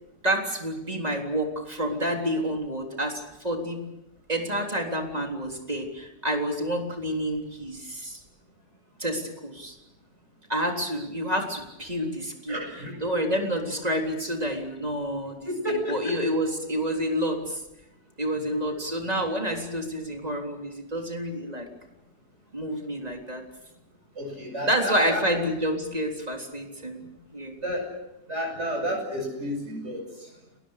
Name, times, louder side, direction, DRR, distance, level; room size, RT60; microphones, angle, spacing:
voice 1, 0.2-3.9 4.3-8.2 9.0-9.8 10.5-12.6 13.0-15.4 15.7-17.6 18.2-21.7 22.5-23.4 24.7-27.6, equal, 25° right, 2 dB, 3.7 m, -29 dB
voice 2, 12.5-13.0 15.4-16.1 24.1-25.2 27.6-27.9 28.3-30.3, equal, 45° right, 2 dB, 8.4 m, -31 dB
30.0 x 21.0 x 6.6 m, 0.91 s
omnidirectional pair, 1.6 m